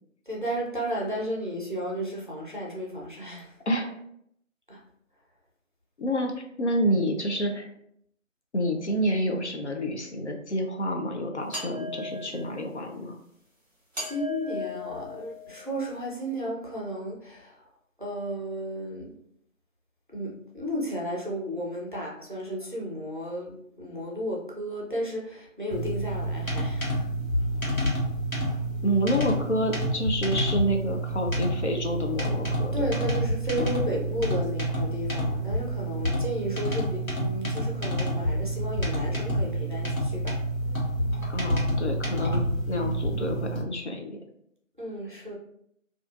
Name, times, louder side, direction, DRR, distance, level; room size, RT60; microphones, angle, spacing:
voice 1, 0.3-3.6 4.7-4.8 14.0-17.7 18.0-19.1 20.1-27.1 32.7-40.4 44.8-45.4, equal, 40° right, -3 dB, 0.5 m, -33 dB
voice 2, 3.7-4.0 6.0-7.7 8.5-13.2 28.8-32.9 33.6-33.7 41.3-44.2, equal, 60° left, 3 dB, 0.5 m, -28 dB
sound 1, 11.5-12.6 13.9-15.8, left 3 dB, 5° right, 1.2 m, -37 dB
sound 2, 25.7-43.6, equal, 85° left, 1.1 m, -28 dB
2.6 x 2.4 x 2.3 m, 0.71 s
figure-of-eight pair, 165°, 40 cm